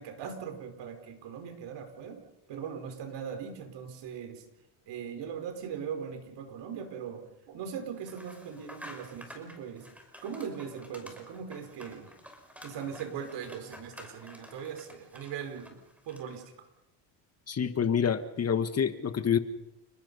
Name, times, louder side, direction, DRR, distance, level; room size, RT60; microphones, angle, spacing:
voice 1, 0.0-2.2 2.5-4.4 4.9-9.9 10.2-12.1 12.6-15.8 16.0-16.4, right 7 dB, 65° right, 6 dB, 5.0 m, -40 dB
sound 1, 8.0-16.5, equal, 5° right, 5.8 m, -50 dB
voice 2, 17.5-19.4, left 7 dB, 35° left, 10 dB, 1.5 m, -27 dB
30.0 x 19.5 x 5.5 m, 0.92 s
cardioid pair, 105°, 45 cm